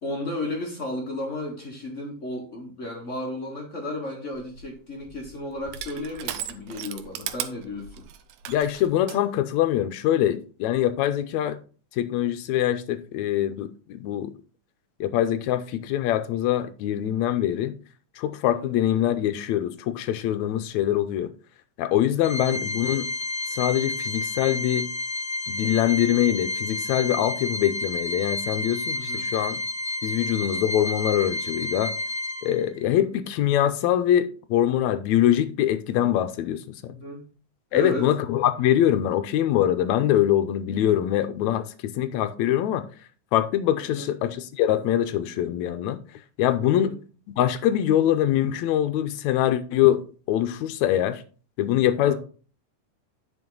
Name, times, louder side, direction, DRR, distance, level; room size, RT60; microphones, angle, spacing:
voice 1, 0.0-8.1 18.5-18.7 28.9-29.2 33.0-33.1 36.9-37.2 37.7-38.1 43.9-44.1 46.7-47.0 52.0-52.1, left 1 dB, 50° left, 0.9 m, -34 dB
Crushing, 4.3-9.2, right 11 dB, 80° right, 2.2 m, -37 dB
voice 2, 8.5-11.6 12.0-14.3 15.0-17.7 18.2-21.3 21.8-23.1 23.5-24.9 25.5-29.6 30.0-31.9 32.4-36.9 37.7-42.8 43.3-46.0 46.4-46.9 47.4-51.2 51.6-52.1, left 11 dB, 80° left, 1.8 m, -23 dB
Organ, 22.2-32.8, left 2 dB, 20° left, 1.4 m, -31 dB
9.6 x 5.4 x 3.9 m
omnidirectional pair, 3.6 m